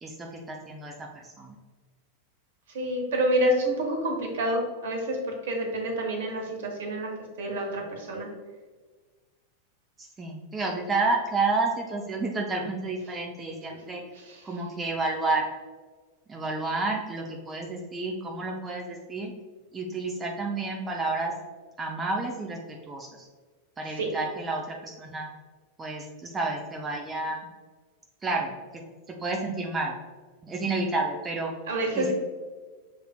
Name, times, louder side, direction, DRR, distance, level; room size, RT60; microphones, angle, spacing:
voice 1, 0.0-0.9 1.2-1.6 10.0-14.0 14.4-15.4 16.3-19.3 19.7-21.3 21.8-23.3 23.8-25.3 25.8-27.5 28.2-28.5 29.1-29.9 30.4-31.5 31.9-32.1, right 3 dB, 15° right, 0 dB, 0.5 m, -30 dB
voice 2, 2.7-7.1 7.4-8.3 14.1-14.4 24.0-24.1 31.7-32.1, right 1 dB, 60° right, 2 dB, 0.9 m, -28 dB
6.2 x 3.3 x 2.3 m, 1.4 s
figure-of-eight pair, 90°, 0 cm